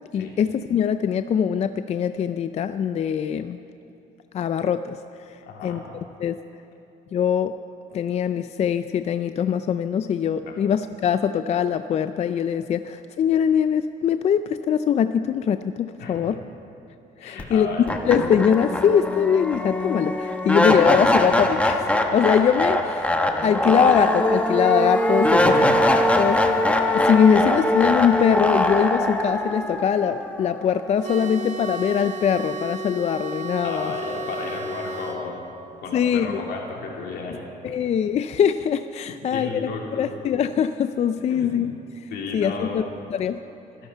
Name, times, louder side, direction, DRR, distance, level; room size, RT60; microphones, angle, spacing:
voice 1, 0.1-3.6 4.3-5.0 5.3-5.8 6.2-6.4 7.1-7.6 7.9-16.4 17.2-17.7 18.0-23.1 23.4-25.6 26.2-26.7 26.9-33.9 35.9-36.4 37.6-41.7 42.0-42.8 43.1-43.4, left 8 dB, 40° left, 11 dB, 0.4 m, -22 dB
voice 2, 5.4-5.8 10.4-10.6 16.0-16.3 17.2-17.9 25.2-25.7 33.6-35.4 35.8-37.8 39.0-40.1 41.3-41.5 42.1-42.8, left 4 dB, 75° left, -1 dB, 2.9 m, -33 dB
sound 1, 17.4-17.5 17.9-30.9, left 1 dB, 5° left, 1.1 m, -22 dB
sound 2, 31.0-35.2, right 2 dB, 45° right, 1.6 m, -33 dB
24.5 x 11.5 x 4.6 m, 2.9 s
cardioid pair, 110°, 17 cm